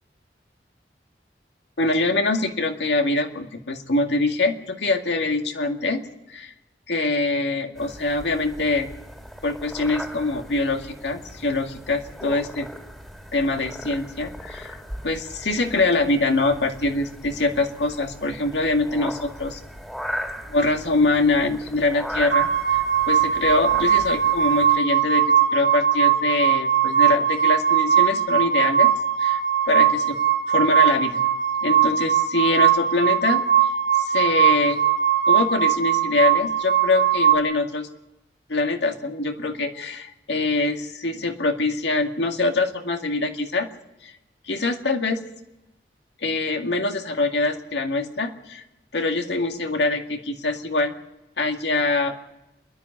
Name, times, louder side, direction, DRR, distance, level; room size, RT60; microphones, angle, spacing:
voice 1, 1.8-6.0 6.3-6.5 6.9-8.9 9.4-12.7 13.3-14.8 15.0-19.6 20.5-22.5 23.1-25.2 25.5-28.9 29.2-29.4 29.7-30.2 30.5-31.2 31.6-33.4 34.1-34.8 35.3-37.9 38.5-43.7 44.0-44.1 44.5-45.2 46.2-48.6 48.9-50.9 51.4-52.1, left 2 dB, 85° left, 4 dB, 2.1 m, -24 dB
sound 1, 7.7-24.8, equal, ahead, 2.2 m, -38 dB
sound 2, 22.3-37.3, right 8 dB, 65° right, 1.6 m, -20 dB
27.5 x 11.0 x 9.9 m, 0.95 s
head